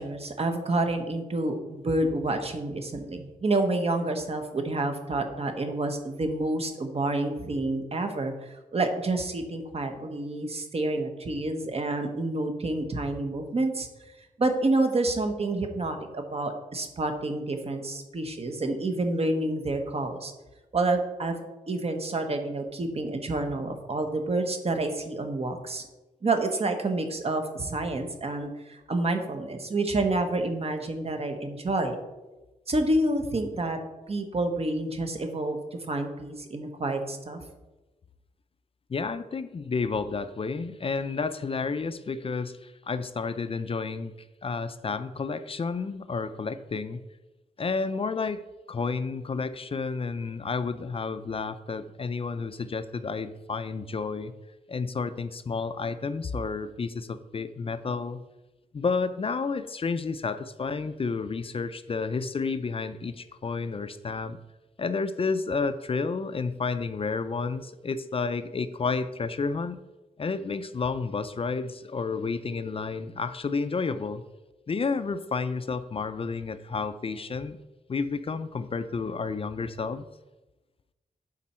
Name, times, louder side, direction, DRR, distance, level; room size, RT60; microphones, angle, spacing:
voice 1, 0.0-13.9 14.4-20.3 20.7-21.4 21.7-25.9 26.2-32.0 32.7-33.8 34.1-37.4, right 2 dB, 45° right, 5 dB, 1.2 m, -28 dB
voice 2, 38.9-44.1 44.4-47.0 47.6-54.3 54.7-58.2 58.7-64.4 64.8-69.8 70.2-74.2 74.7-77.6 77.9-80.1, left 4 dB, 40° left, 12 dB, 0.4 m, -31 dB
11.5 x 4.5 x 4.3 m, 1.1 s
wide cardioid pair, 120°, 15 cm